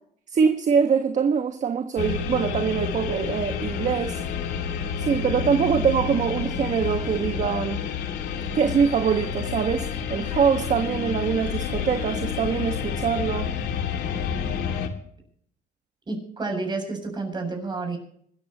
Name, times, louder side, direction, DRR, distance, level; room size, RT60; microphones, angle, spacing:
voice 1, 0.3-4.2 5.0-7.8 8.5-13.5, right 6 dB, 45° right, 1.5 m, -24 dB
sound 1, 2.0-14.9, left 7 dB, 80° left, 2.4 m, -29 dB
voice 2, 16.1-18.0, right 3 dB, 25° right, 7.6 m, -30 dB
25.5 x 13.5 x 3.0 m
cardioid pair, 110°, 17 cm